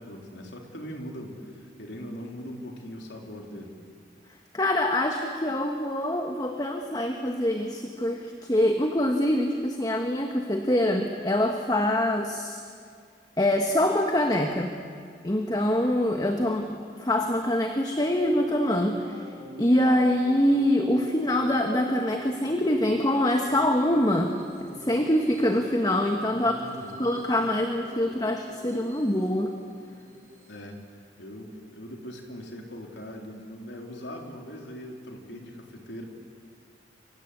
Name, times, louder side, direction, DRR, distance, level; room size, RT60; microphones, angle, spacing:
voice 1, 0.0-3.8 26.3-27.1 30.5-30.8 31.2-36.0, equal, 75° left, 2 dB, 3.6 m, -40 dB
voice 2, 4.5-12.6 13.4-14.7 15.2-19.2 19.6-24.4 24.7-26.5 27.0-29.5, left 1 dB, 20° left, 4 dB, 1.4 m, -24 dB
sound 1, 18.1-30.6, left 1 dB, 15° right, 4.7 m, -45 dB
29.0 x 25.0 x 8.3 m, 2.1 s
head